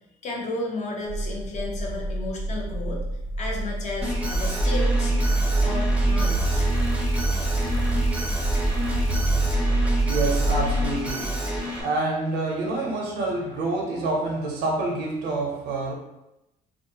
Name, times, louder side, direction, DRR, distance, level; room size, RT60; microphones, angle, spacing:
voice 1, 0.2-3.0 3.4-5.1 5.6-6.6, left 2 dB, 45° left, 0 dB, 0.6 m, -33 dB
sound 1, 1.1-10.9, right 2 dB, 80° left, 0.6 m, -24 dB
Alarm, 4.0-11.8, equal, 10° right, 0.5 m, -30 dB
voice 2, 10.1-11.4 11.8-15.9, right 2 dB, 75° right, 1 dB, 0.5 m, -27 dB
2.4 x 2.2 x 2.7 m, 0.90 s
cardioid pair, 110°, 17 cm